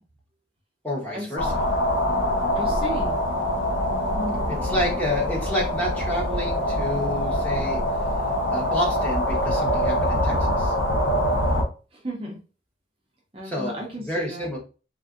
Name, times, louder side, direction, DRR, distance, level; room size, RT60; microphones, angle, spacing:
voice 1, 0.8-1.6 4.5-7.8 8.5-10.7 13.4-14.6, left 1 dB, 10° left, -4 dB, 0.8 m, -29 dB
sound 1, 1.4-11.6, equal, 80° left, 0.9 m, -24 dB
voice 2, 2.5-3.2 4.1-4.5 11.9-12.4 13.3-14.5, right 1 dB, 30° right, -1 dB, 0.5 m, -34 dB
3.5 x 2.5 x 2.4 m, 0.33 s
head